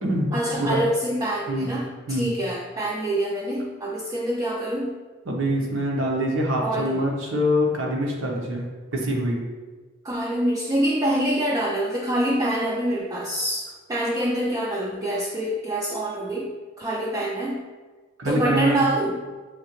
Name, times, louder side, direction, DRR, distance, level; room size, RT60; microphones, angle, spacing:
voice 1, 0.3-5.0 6.6-7.0 10.0-17.6 18.2-19.2, right 1 dB, 20° right, -2 dB, 0.3 m, -26 dB
voice 2, 5.3-8.6 8.9-9.4 18.2-18.8, equal, 90° right, -1 dB, 0.9 m, -24 dB
6.3 x 2.8 x 3.0 m, 1.4 s
head